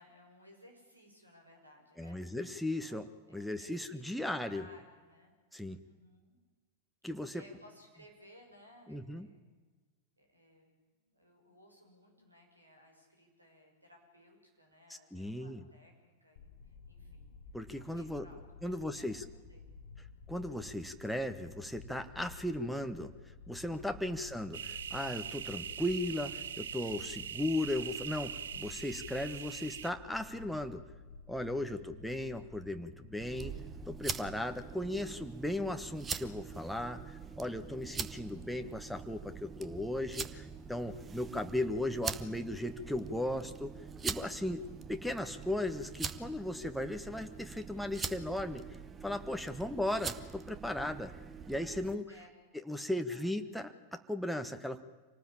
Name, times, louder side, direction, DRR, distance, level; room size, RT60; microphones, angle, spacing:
voice 1, 0.0-2.5 2.8-3.0 3.3-5.3 5.8-6.4 7.3-9.5 10.2-17.3 17.7-19.6 31.6-32.1 49.4-49.9 52.1-52.3 52.7-53.3, equal, 85° right, 2 dB, 6.4 m, -61 dB
voice 2, 2.0-3.0 3.3-4.7 5.5-5.8 7.0-7.4 8.9-9.3 15.1-15.6 17.5-18.2 18.6-19.2 20.3-23.1 23.5-30.8 31.3-33.5 33.9-43.7 44.0-44.6 44.9-48.6 49.0-51.1 51.5-52.1 52.7-54.8, left 1 dB, ahead, 5 dB, 1.4 m, -36 dB
sound 1, 16.4-34.3, left 4 dB, 60° left, 1.3 m, -52 dB
sound 2, 24.5-29.9, right 9 dB, 65° right, 0.7 m, -42 dB
sound 3, 33.2-52.0, right 6 dB, 20° right, 1.1 m, -43 dB
26.5 x 19.0 x 8.8 m, 1.3 s
figure-of-eight pair, 90°, 0 cm